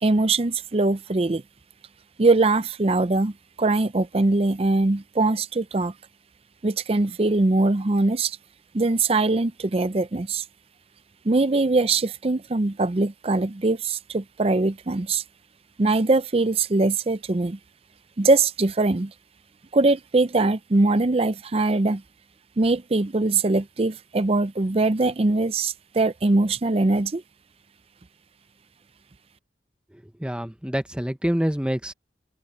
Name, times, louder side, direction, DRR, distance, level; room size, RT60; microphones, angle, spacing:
voice 1, 0.0-1.4 2.2-3.3 3.6-5.9 6.6-8.4 8.7-10.4 11.2-15.2 15.8-17.6 18.2-19.1 19.7-22.0 22.6-27.2, right 2 dB, 35° right, 0.5 m, -22 dB
voice 2, 30.2-31.9, equal, 5° right, 0.9 m, -26 dB
open air
head